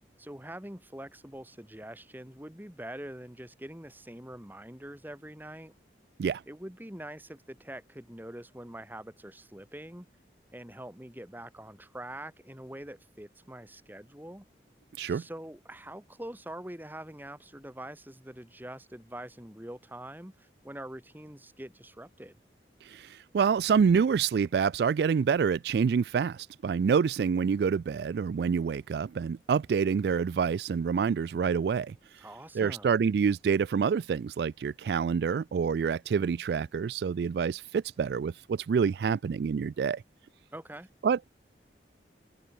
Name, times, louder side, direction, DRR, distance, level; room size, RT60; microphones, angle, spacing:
voice 1, 0.2-5.7 6.5-10.1 10.5-14.5 15.1-22.4 32.2-32.9 40.5-40.9, right 1 dB, 10° right, 2.1 m, -44 dB
voice 2, 22.8-32.2 32.5-40.0 41.0-41.4, right 6 dB, 65° right, 0.3 m, -27 dB
open air
head